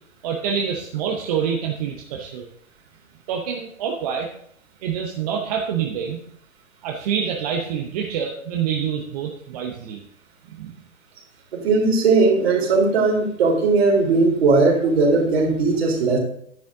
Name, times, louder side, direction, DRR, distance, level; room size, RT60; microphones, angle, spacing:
voice 1, 0.2-2.5 3.3-4.3 4.8-6.2 6.8-10.0 10.5-10.7, right 7 dB, 30° right, 1 dB, 0.9 m, -26 dB
voice 2, 11.5-16.2, right 3 dB, 45° right, -1 dB, 3.7 m, -18 dB
10.5 x 9.6 x 3.7 m, 0.67 s
figure-of-eight pair, 125°, 41 cm